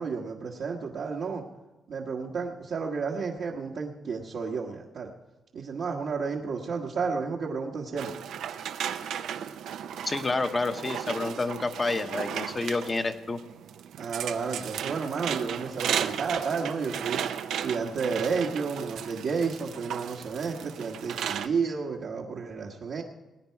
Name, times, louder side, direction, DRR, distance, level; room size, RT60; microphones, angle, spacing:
voice 1, 0.0-1.4 1.9-5.1 5.5-8.1 14.0-17.2 17.6-23.0, right 5 dB, 70° right, -4 dB, 1.3 m, -31 dB
sound 1, 8.0-21.5, right 9 dB, 85° right, 0.6 m, -35 dB
voice 2, 10.0-13.4, left 3 dB, 30° left, 8 dB, 0.9 m, -29 dB
19.5 x 9.5 x 4.5 m, 1.1 s
cardioid pair, 100°, 0 cm